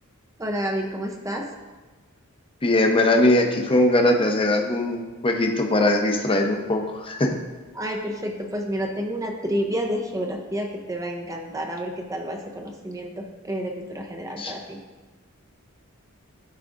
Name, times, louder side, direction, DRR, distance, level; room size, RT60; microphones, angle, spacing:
voice 1, 0.4-1.4 7.7-14.8, equal, 15° right, 1 dB, 0.6 m, -29 dB
voice 2, 2.6-7.3 14.4-14.5, left 1 dB, 25° left, 3 dB, 0.7 m, -21 dB
12.5 x 4.8 x 2.5 m, 1.3 s
head